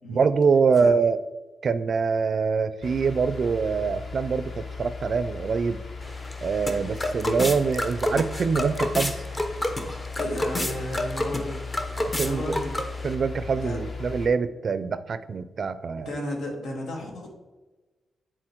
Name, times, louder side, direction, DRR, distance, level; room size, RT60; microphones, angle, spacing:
voice 1, 0.1-1.2 1.6-5.8 6.4-9.2 12.0-12.6 13.0-16.1, right 5 dB, 50° right, 14 dB, 0.4 m, -24 dB
sound 1, 2.8-14.3, left 4 dB, 45° left, 1.0 m, -37 dB
sound 2, 6.0-13.1, left 1 dB, 20° left, 0.8 m, -30 dB
voice 2, 10.2-11.6 12.2-12.8 13.6-13.8 16.0-17.4, left 1 dB, 80° left, 0 dB, 1.8 m, -33 dB
9.8 x 3.9 x 4.6 m, 1.2 s
cardioid pair, 115°, 0 cm